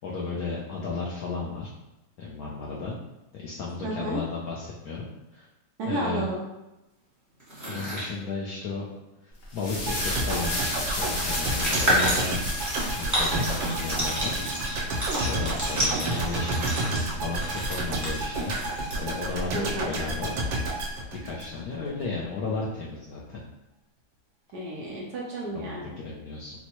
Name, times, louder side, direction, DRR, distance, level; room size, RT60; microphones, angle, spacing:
voice 1, 0.0-1.7 2.2-3.0 3.4-5.1 5.3-5.5 5.8-6.3 7.7-8.9 9.2-12.4 12.9-14.4 15.1-16.8 17.2-20.4 21.2-23.4 25.5-26.5, left 3 dB, 75° left, -4 dB, 0.8 m, -34 dB
voice 2, 3.8-4.2 5.8-6.4 14.3-14.5 19.5-19.9 24.5-25.9, right 1 dB, 70° right, -3 dB, 1.0 m, -32 dB
sound 1, 7.4-8.1 9.5-9.6 9.8-19.4, equal, 15° right, 0.7 m, -31 dB
sound 2, 9.4-14.6, left 1 dB, 50° left, 1.1 m, -33 dB
sound 3, 9.9-21.9 22.2-22.3, right 2 dB, 85° right, 1.5 m, -30 dB
4.4 x 2.0 x 2.8 m, 0.97 s
omnidirectional pair, 2.1 m